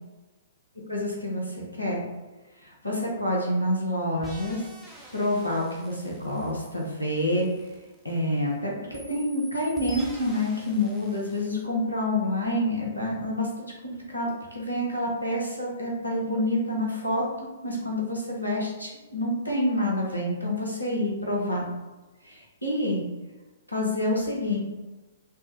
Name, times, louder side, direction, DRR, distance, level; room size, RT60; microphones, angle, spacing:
voice 1, 0.9-2.0 2.6-4.6 5.1-7.5 8.0-21.7 22.2-23.1 23.7-24.6, left 1 dB, 90° left, -3 dB, 0.7 m, -28 dB
sound 1, 4.2-8.5 8.9-11.6, right 1 dB, 10° right, 0.6 m, -47 dB
3.3 x 2.0 x 2.9 m, 1.2 s
figure-of-eight pair, 115°, 0 cm